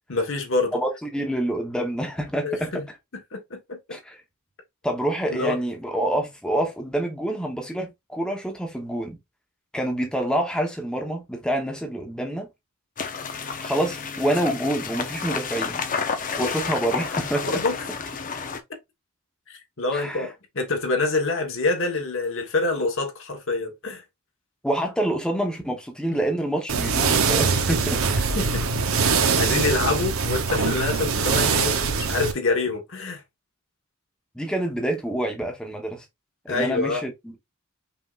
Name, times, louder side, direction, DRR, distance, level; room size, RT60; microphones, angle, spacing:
voice 1, 0.1-0.8 2.4-2.9 3.3-4.0 5.3-5.6 16.4-16.5 17.4-17.9 19.5-24.0 26.1-26.2 28.3-28.6 29.1-33.2 36.5-37.0, left 3 dB, 60° left, 1.3 m, -26 dB
voice 2, 0.7-2.7 3.9-4.2 4.8-9.2 9.7-12.5 13.6-15.8 16.4-17.5 19.9-20.3 24.6-28.3 34.3-36.0 36.5-37.4, right 1 dB, 5° left, 0.9 m, -27 dB
sound 1, 13.0-18.6, left 5 dB, 40° left, 0.6 m, -30 dB
sound 2, 26.7-32.3, right 5 dB, 70° right, 0.8 m, -23 dB
5.5 x 3.6 x 2.4 m
head